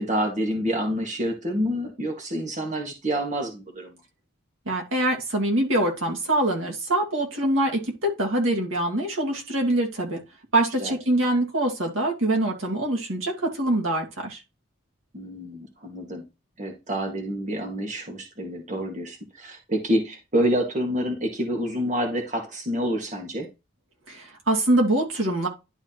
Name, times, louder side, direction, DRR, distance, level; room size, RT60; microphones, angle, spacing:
voice 1, 0.0-4.0 10.8-11.0 15.1-16.3 16.6-23.5, equal, 35° right, 2 dB, 1.8 m, -28 dB
voice 2, 4.7-10.2 10.5-14.4 24.1-25.5, right 1 dB, 80° right, 0 dB, 2.0 m, -24 dB
11.5 x 4.7 x 2.9 m, 0.26 s
head